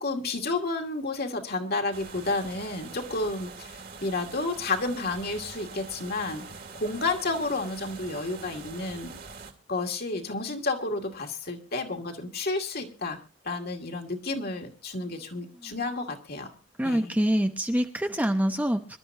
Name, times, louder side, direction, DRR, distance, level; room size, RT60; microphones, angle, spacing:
voice 1, 0.0-6.5 6.7-9.2 9.7-13.2 13.4-16.5 16.8-17.1, left 3 dB, 50° left, 3 dB, 2.4 m, -31 dB
sound 1, 1.9-9.5, right 4 dB, 50° right, 2.6 m, -44 dB
voice 2, 15.5-15.8 16.8-19.0, equal, 10° right, 6 dB, 0.9 m, -26 dB
26.0 x 12.5 x 2.7 m, 0.31 s
head